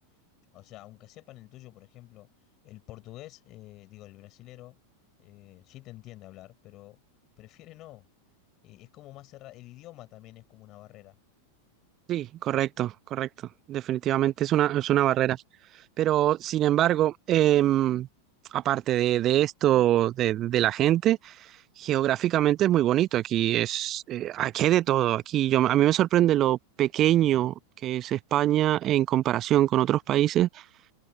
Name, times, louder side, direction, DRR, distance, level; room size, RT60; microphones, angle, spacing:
voice 1, 0.5-4.8 5.2-7.0 7.4-8.1 8.6-11.2, left 17 dB, 35° left, 6.9 m, -48 dB
voice 2, 12.1-13.3 13.7-15.4 16.0-18.1 18.5-21.3 21.8-27.5 27.8-30.6, right 13 dB, 30° right, 0.7 m, -24 dB
figure-of-eight pair, 90°, 0 cm